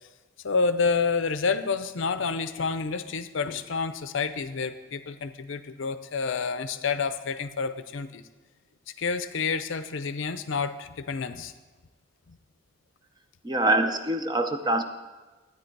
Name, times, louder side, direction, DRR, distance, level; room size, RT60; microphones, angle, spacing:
voice 1, 0.4-8.2 9.0-11.5 12.3-12.4, left 5 dB, 60° left, 11 dB, 0.6 m, -29 dB
voice 2, 13.4-14.8, right 2 dB, 20° right, 7 dB, 0.6 m, -24 dB
12.5 x 9.6 x 4.6 m, 1.3 s
head